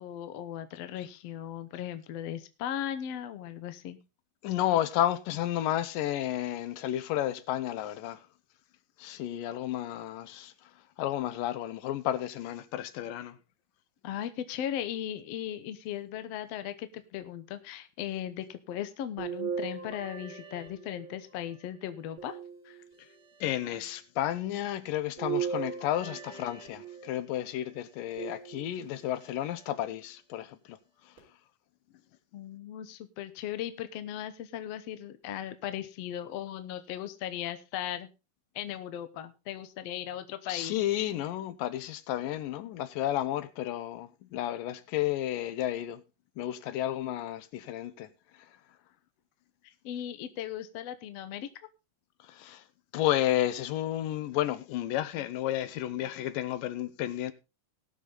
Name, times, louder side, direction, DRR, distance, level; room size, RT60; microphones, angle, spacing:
voice 1, 0.0-4.0 14.0-22.4 22.6-22.8 32.3-38.1 38.5-40.7 49.8-51.5, left 10 dB, 65° left, 1.7 m, -37 dB
voice 2, 4.4-8.2 9.0-10.7 11.0-13.4 23.4-30.8 31.0-31.1 40.5-46.0 46.4-48.1 48.4-48.5 52.2-52.6 52.9-57.3, left 13 dB, 85° left, 2.5 m, -32 dB
sound 1, 19.2-21.4 22.2-23.2 25.2-27.2 28.2-29.0 29.7-29.8 31.2-31.3, right 7 dB, 35° right, 4.4 m, -38 dB
19.5 x 6.8 x 3.9 m
omnidirectional pair, 3.8 m